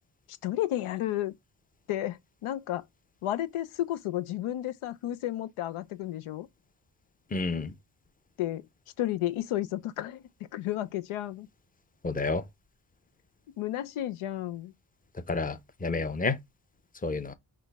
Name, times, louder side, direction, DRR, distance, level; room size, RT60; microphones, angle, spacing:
voice 1, 0.4-1.3 1.9-2.8 3.2-6.5 8.4-8.7 9.0-10.2 10.5-11.5 13.6-14.7, left 13 dB, 85° left, 0.6 m, -32 dB
voice 2, 7.3-7.7 12.0-12.4 15.3-16.4 17.0-17.3, left 3 dB, 15° left, 0.7 m, -30 dB
6.1 x 2.1 x 3.4 m
cardioid pair, 65°, 49 cm